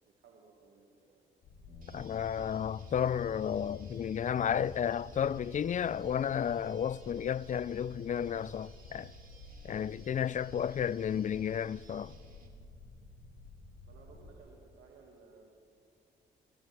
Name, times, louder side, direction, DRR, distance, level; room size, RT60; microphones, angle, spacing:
voice 1, 0.1-1.2 10.5-11.2 13.9-15.5, right 4 dB, 75° right, 2.0 m, -59 dB
sound 1, 1.4-14.4, left 2 dB, 80° left, 2.2 m, -52 dB
sound 2, 1.7-7.9, left 6 dB, 60° left, 4.5 m, -54 dB
sound 3, 1.8-12.5, right 3 dB, 45° right, 2.8 m, -61 dB
voice 2, 1.9-9.1 9.6-12.1, left 8 dB, 40° left, 0.4 m, -32 dB
21.5 x 15.5 x 3.4 m
supercardioid pair, 55°, 21 cm